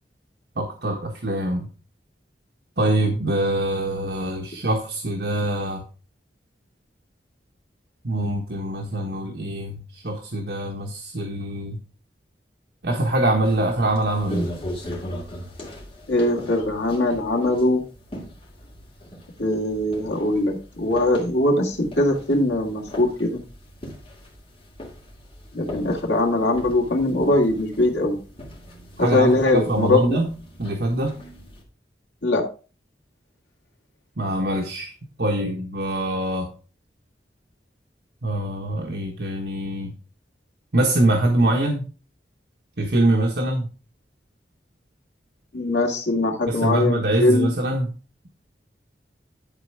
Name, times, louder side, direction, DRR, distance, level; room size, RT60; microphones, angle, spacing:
voice 1, 0.5-1.7 2.8-5.8 8.0-11.8 12.8-14.5 29.0-30.3 30.6-31.2 34.2-34.9 35.2-36.5 38.2-39.9 40.7-41.9 42.8-43.7 46.5-47.9, right 1 dB, 65° right, 0 dB, 1.4 m, -24 dB
sound 1, 13.4-31.6, equal, 35° left, 2.9 m, -39 dB
voice 2, 16.1-17.8 19.4-23.4 25.5-28.2 29.0-30.2 32.2-32.4 45.5-47.5, left 2 dB, 85° left, 0 dB, 2.5 m, -21 dB
11.5 x 4.2 x 4.8 m, 0.35 s
head